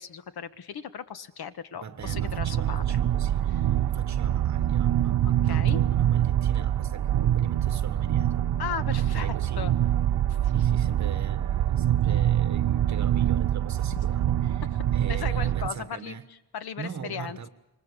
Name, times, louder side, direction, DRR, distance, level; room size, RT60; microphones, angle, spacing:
voice 1, 0.0-2.8 3.6-3.7 5.2-5.8 8.6-9.7 10.3-10.6 14.7-14.8 15.1-16.1 16.5-17.4, left 7 dB, 85° left, 1.5 m, -37 dB
voice 2, 1.7-3.5 3.8-8.4 9.0-9.8 10.5-14.7 14.9-16.3 16.8-17.5, right 7 dB, 50° right, 1.7 m, -41 dB
sound 1, 2.0-15.7, right 11 dB, 90° right, 0.9 m, -25 dB
28.0 x 25.0 x 7.0 m
wide cardioid pair, 160°, 37 cm